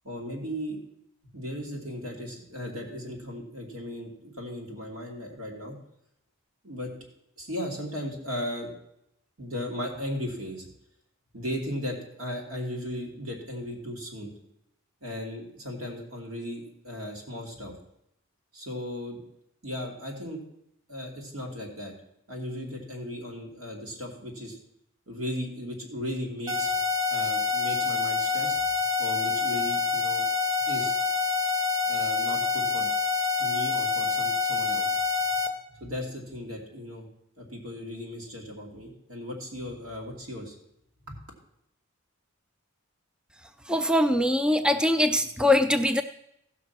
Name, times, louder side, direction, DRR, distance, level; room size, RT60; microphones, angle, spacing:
voice 1, 0.0-0.8 1.3-5.7 6.6-6.9 7.4-8.7 9.4-10.7 11.3-14.3 15.0-17.8 18.5-19.2 19.6-20.4 20.9-21.9 22.3-24.6 25.1-26.8 27.1-28.6 29.0-30.2 30.7-30.9 31.9-32.9 33.4-34.9 35.7-37.1 37.4-40.5, left 1 dB, 70° right, -1 dB, 3.0 m, -36 dB
sound 1, 26.5-35.5, left 5 dB, 20° right, 0.9 m, -26 dB
voice 2, 43.7-46.0, left 1 dB, 5° right, 9 dB, 0.4 m, -22 dB
15.5 x 6.0 x 6.1 m, 0.78 s
head